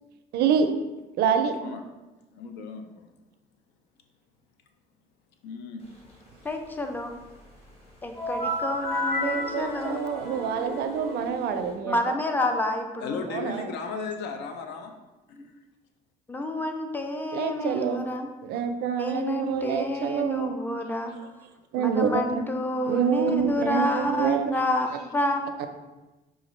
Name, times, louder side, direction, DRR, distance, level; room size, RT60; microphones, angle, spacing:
voice 1, 0.3-0.7 1.2-1.6 9.2-12.0 13.3-13.7 17.3-18.0 18.5-20.5 21.7-22.4 22.9-24.5, right 7 dB, 70° right, 7 dB, 0.4 m, -26 dB
voice 2, 2.3-3.1 5.4-5.9 13.0-15.0 15.3-15.5 20.8-20.9, left 5 dB, 80° left, 5 dB, 0.5 m, -36 dB
voice 3, 6.4-7.1 8.0-10.0 11.9-13.3 15.4-15.5 16.3-18.3 19.0-21.1 21.8-25.4, left 1 dB, 10° left, 5 dB, 0.4 m, -29 dB
sound 1, 8.1-11.7, left 1 dB, 35° left, 1.2 m, -32 dB
5.0 x 2.4 x 3.1 m, 1.1 s
cardioid pair, 110°, 17 cm